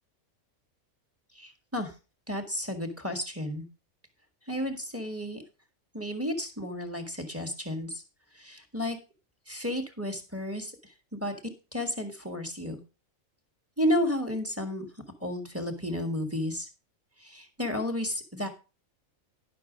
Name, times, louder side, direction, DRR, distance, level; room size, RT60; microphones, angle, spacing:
voice 1, 1.3-1.9 2.3-3.6 4.5-5.4 5.9-8.0 8.4-9.0 9.5-10.7 11.1-11.3 11.7-12.8 13.8-14.9 15.2-16.7 17.2-18.5, left 1 dB, 10° right, 5 dB, 1.4 m, -32 dB
11.0 x 6.0 x 5.0 m, 0.31 s
omnidirectional pair, 1.5 m